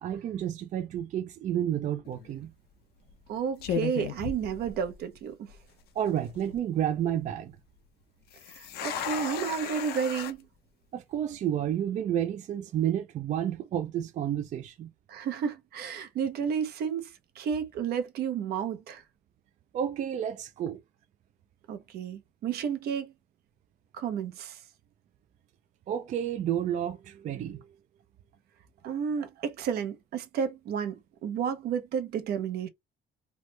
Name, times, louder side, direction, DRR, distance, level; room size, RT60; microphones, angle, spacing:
voice 1, 0.0-2.5 6.0-7.6 10.9-14.9 19.7-20.8 25.9-27.6, right 10 dB, 45° right, 0.4 m, -30 dB
sound 1, 2.1-2.4 3.1-3.3 3.6-5.2 5.5-5.6 6.2-6.6 8.3-10.3, left 9 dB, 70° left, 0.6 m, -35 dB
voice 2, 3.3-5.5 8.5-10.4 15.1-19.0 21.7-23.1 23.9-24.6 28.8-32.7, right 7 dB, 70° right, 0.7 m, -32 dB
3.0 x 2.0 x 3.2 m
cardioid pair, 110°, 17 cm